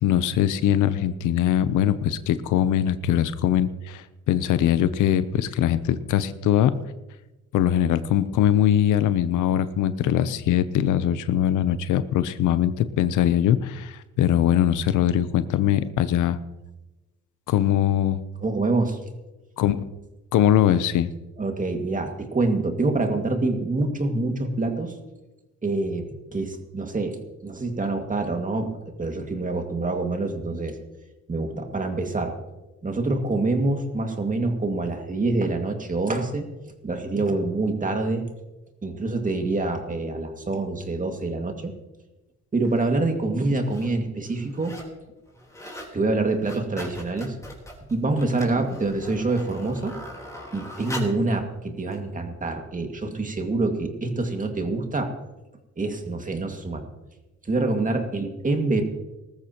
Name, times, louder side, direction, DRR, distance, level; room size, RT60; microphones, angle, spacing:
voice 1, 0.0-6.8 7.5-16.4 17.5-18.2 19.6-19.8 20.3-21.1, left 10 dB, 85° left, 13 dB, 0.8 m, -21 dB
voice 2, 18.4-19.0 21.4-24.9 25.6-26.1 26.3-27.2 27.4-30.8 31.3-32.3 32.8-36.5 36.8-38.2 38.8-41.7 42.5-44.8 45.9-47.3 47.9-50.0 50.5-55.1 55.8-56.9 57.5-58.8, right 2 dB, 25° right, 4 dB, 2.2 m, -26 dB
sound 1, 42.6-42.8 43.5-43.9 44.2-45.0 45.3-45.9 46.3-51.3 51.9-52.0, left 1 dB, 10° left, 3.8 m, -40 dB
19.5 x 13.5 x 3.0 m, 1.0 s
cardioid pair, 90°, 30 cm